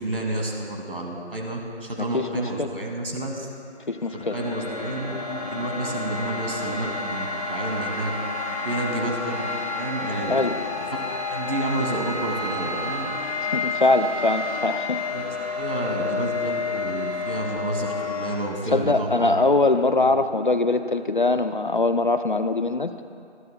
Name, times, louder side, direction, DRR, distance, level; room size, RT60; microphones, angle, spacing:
voice 1, 0.0-3.5 4.1-8.1 8.6-9.5 9.7-11.0 11.3-13.1 15.1-19.4 20.0-20.1, right 1 dB, 55° right, 0 dB, 2.4 m, -30 dB
voice 2, 2.0-2.7 3.9-4.4 10.3-10.5 13.5-15.0 18.7-22.9, left 2 dB, 50° left, 9 dB, 0.5 m, -22 dB
sound 1, 3.8-18.4, left 3 dB, 30° left, 1.8 m, -30 dB
20.5 x 13.5 x 2.3 m, 2.4 s
figure-of-eight pair, 165°, 33 cm